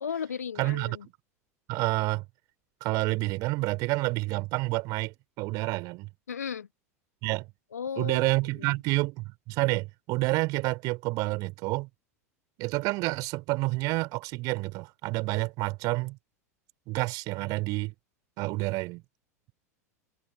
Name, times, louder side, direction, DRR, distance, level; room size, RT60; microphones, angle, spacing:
voice 1, 0.0-1.0 6.3-6.7 7.7-8.3, left 7 dB, 75° left, 1.4 m, -35 dB
voice 2, 0.6-1.1 1.7-2.2 2.8-6.1 7.2-7.5 8.0-11.9 12.6-16.2 16.9-17.9 18.4-19.0, right 23 dB, 45° right, 3.0 m, -29 dB
figure-of-eight pair, 85°, 9 cm